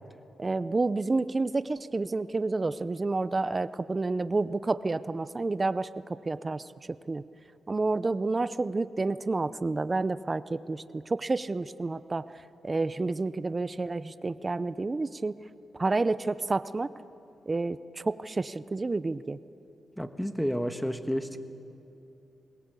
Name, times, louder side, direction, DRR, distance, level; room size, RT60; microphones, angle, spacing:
voice 1, 0.4-7.2 7.7-15.4 15.8-16.9 17.5-19.4, right 3 dB, 35° right, 15 dB, 0.6 m, -30 dB
voice 2, 20.0-21.4, equal, ahead, 8 dB, 1.4 m, -30 dB
21.0 x 18.0 x 8.3 m, 2.8 s
cardioid pair, 60°, 0 cm